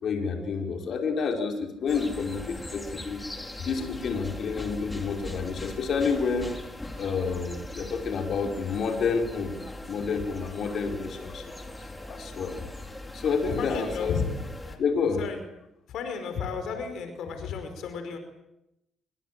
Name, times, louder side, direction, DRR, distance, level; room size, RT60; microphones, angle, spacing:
voice 1, 0.0-3.2 3.6-6.6 7.0-9.6 9.8-11.4 11.8-12.5 13.1-14.2 14.8-15.2, left 5 dB, 60° left, 3 dB, 5.0 m, -29 dB
sound 1, 1.9-14.8, left 1 dB, 15° left, 4.6 m, -40 dB
voice 2, 13.5-14.3 14.6-14.8 15.2-15.4 15.9-18.2, left 6 dB, 75° left, 7 dB, 5.0 m, -33 dB
26.5 x 24.0 x 7.7 m, 0.86 s
cardioid pair, 90°, 0 cm